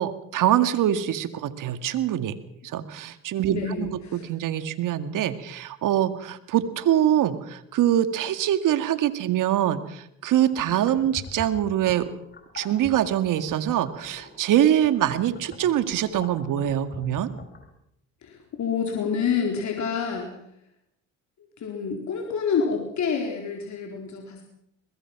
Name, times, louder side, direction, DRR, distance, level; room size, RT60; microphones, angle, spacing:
voice 1, 0.0-2.4 2.7-12.1 12.5-17.3, right 11 dB, 65° right, 11 dB, 2.0 m, -24 dB
voice 2, 3.5-4.3 18.2-20.4 21.6-24.4, left 6 dB, 55° left, 2 dB, 4.2 m, -28 dB
sound 1, 10.5-17.7, left 3 dB, 30° left, 4.4 m, -44 dB
23.0 x 21.0 x 6.0 m, 0.75 s
supercardioid pair, 65°, 34 cm